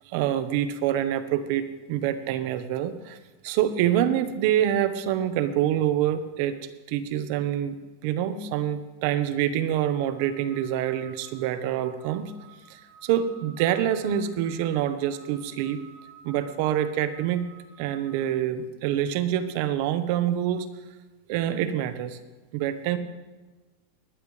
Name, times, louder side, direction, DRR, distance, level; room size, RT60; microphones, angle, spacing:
voice 1, 0.1-3.2 3.4-6.6 6.9-7.7 8.0-12.3 12.7-15.8 16.2-17.5 17.8-20.7 21.3-22.2 22.5-23.0, right 11 dB, 60° right, 11 dB, 1.2 m, -26 dB
sound 1, 9.8-18.3, right 6 dB, 35° right, 4.9 m, -52 dB
19.5 x 12.5 x 3.4 m, 1.2 s
supercardioid pair, 135°, 0 cm